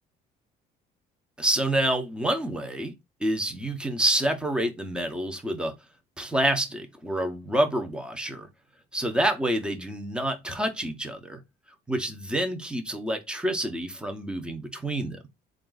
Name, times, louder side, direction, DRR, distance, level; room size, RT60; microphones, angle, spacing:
voice 1, 1.4-2.9 3.2-5.7 6.2-8.5 8.9-11.4 11.9-15.2, right 1 dB, 5° right, 0.9 m, -27 dB
3.7 x 2.5 x 3.9 m
cardioid pair, 110°, 17 cm